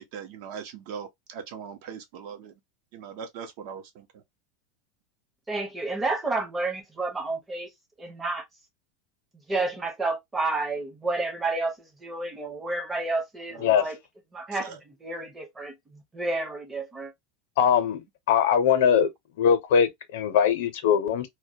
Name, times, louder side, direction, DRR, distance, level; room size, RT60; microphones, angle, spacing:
voice 1, 0.0-2.5 2.9-4.2 13.5-13.7 14.5-14.8, right 7 dB, 55° right, 0.6 m, -40 dB
voice 2, 5.5-7.7 8.0-8.4 9.5-14.0 14.3-17.1, right 2 dB, 10° right, 0.7 m, -30 dB
voice 3, 17.6-19.1 19.4-21.3, left 8 dB, 75° left, 0.6 m, -21 dB
2.1 x 2.1 x 2.7 m
supercardioid pair, 160°, 0 cm